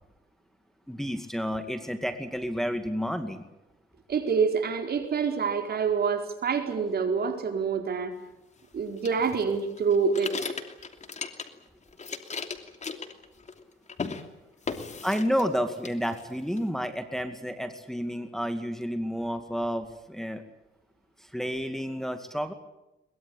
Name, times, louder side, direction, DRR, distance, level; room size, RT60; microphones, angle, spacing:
voice 1, 0.9-3.4 15.0-20.4 21.2-22.5, equal, ahead, 7 dB, 2.2 m, -30 dB
voice 2, 4.1-8.1 8.7-10.5, right 5 dB, 50° right, 5 dB, 4.5 m, -27 dB
sound 1, 9.0-11.7 11.9-13.6 13.9-14.2 14.7-15.5 15.8-16.6, left 5 dB, 35° left, 2.9 m, -36 dB
23.0 x 22.0 x 8.7 m, 0.96 s
cardioid pair, 90°, 20 cm